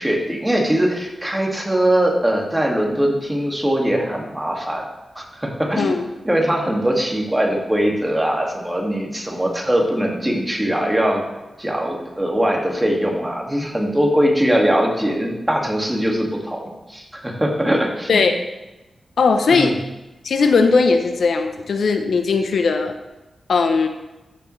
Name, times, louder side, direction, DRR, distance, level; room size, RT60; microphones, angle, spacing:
voice 1, 0.0-4.8 5.2-6.0 6.2-11.2 11.6-18.2 19.5-19.7, right 1 dB, 10° right, -1 dB, 2.1 m, -21 dB
voice 2, 5.8-6.1 18.1-18.3 19.2-19.7 20.2-22.9 23.5-23.9, left 4 dB, 80° left, 7 dB, 0.7 m, -18 dB
13.5 x 7.0 x 3.2 m, 1.0 s
cardioid pair, 75°, 0 cm